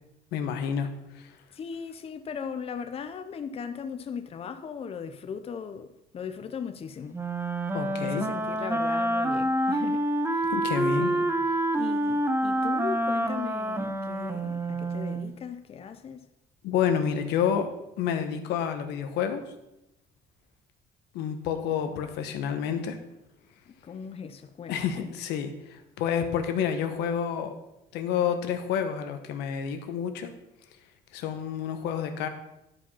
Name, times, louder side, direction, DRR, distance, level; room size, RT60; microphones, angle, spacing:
voice 1, 0.3-0.9 1.1-1.3 7.7-8.2 10.5-11.1 16.6-17.7 18.0-19.4 21.1-23.0 24.7-27.6 27.9-30.3 31.1-32.3, left 8 dB, 90° left, 1.1 m, -29 dB
voice 2, 1.5-7.2 8.0-10.5 11.0-11.3 11.7-16.3 23.7-25.1, left 6 dB, 35° left, 0.6 m, -38 dB
Wind instrument woodwind instrument, 7.1-15.3, right 1 dB, 15° right, 0.7 m, -27 dB
11.0 x 5.0 x 5.6 m
cardioid pair, 110°, 17 cm